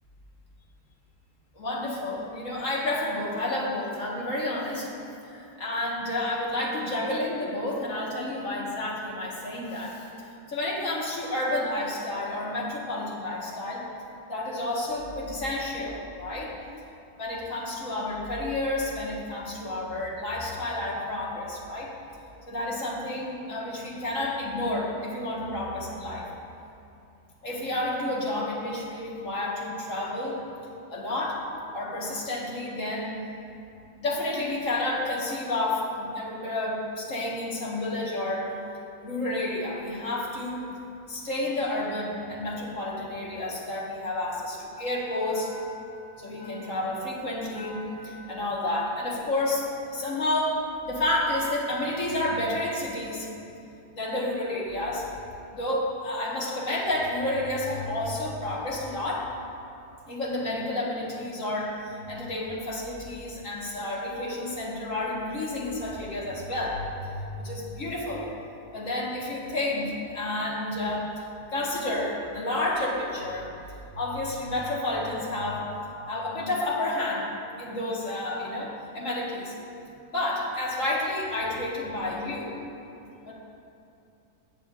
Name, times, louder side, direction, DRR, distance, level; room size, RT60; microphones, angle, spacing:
voice 1, 1.5-5.0 5.3-10.1 10.5-13.9 14.3-16.6 17.2-21.9 22.5-26.3 27.4-30.4 30.9-31.4 31.7-33.2 34.0-38.6 39.0-40.6 41.1-45.7 46.2-53.3 53.9-55.1 55.5-59.3 60.1-68.3 68.7-73.5 73.8-75.7 76.1-79.5 80.1-82.5 83.3-83.4, left 1 dB, 55° left, -5 dB, 2.1 m, -30 dB
19.5 x 7.5 x 2.6 m, 2.6 s
omnidirectional pair, 1.6 m